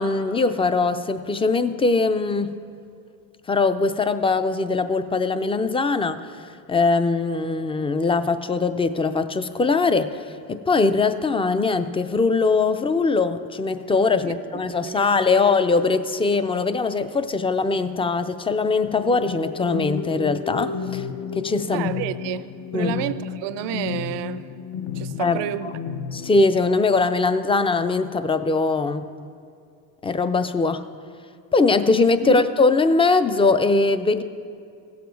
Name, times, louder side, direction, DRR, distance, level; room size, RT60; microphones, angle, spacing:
voice 1, 0.0-2.6 3.5-6.2 6.7-10.1 10.5-21.1 21.3-21.9 22.7-22.9 25.2-25.7 26.1-29.1 30.0-30.8 31.5-34.2, left 3 dB, 15° left, 0.3 m, -21 dB
voice 2, 14.3-15.0 15.3-15.4 21.7-24.5 24.9-25.7 32.2-32.4, right 12 dB, 80° right, 0.6 m, -30 dB
sound 1, 19.0-26.4, left 7 dB, 60° left, 0.8 m, -32 dB
16.5 x 7.3 x 4.5 m
cardioid pair, 105°, 41 cm